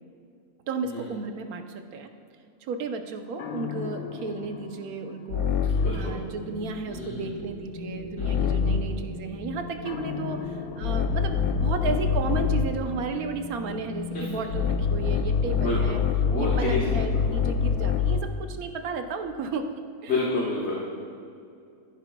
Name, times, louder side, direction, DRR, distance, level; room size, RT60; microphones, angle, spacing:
voice 1, 0.7-2.1 2.6-16.0 16.4-19.7 20.0-20.1, right 4 dB, 90° right, 6 dB, 1.2 m, -33 dB
sound 1, 3.4-6.1 8.2-9.0 9.9-12.8 14.5-18.4, left 6 dB, 80° left, 1.1 m, -26 dB
voice 2, 5.8-6.2 6.9-7.3 8.2-8.4 14.1-14.2 15.5-16.0 16.3-17.0 20.1-20.8, left 2 dB, 50° left, -7 dB, 1.5 m, -29 dB
Wind, 5.8-15.8, left 2 dB, 40° right, 2.1 m, -40 dB
14.5 x 9.8 x 2.3 m, 2.6 s
omnidirectional pair, 1.5 m